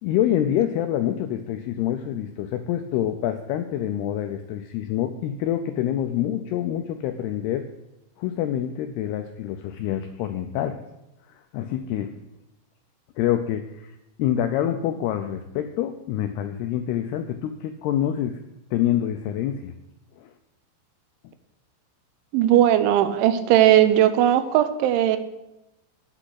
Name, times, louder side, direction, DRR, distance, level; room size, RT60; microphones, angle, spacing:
voice 1, 0.0-7.7 8.2-10.8 11.5-12.1 13.2-18.4 18.7-19.7 20.2-20.3, left 11 dB, 90° left, 7 dB, 2.3 m, -26 dB
voice 2, 22.3-25.2, right 11 dB, 90° right, 10 dB, 3.2 m, -18 dB
8.9 x 6.1 x 8.1 m, 0.91 s
omnidirectional pair, 5.3 m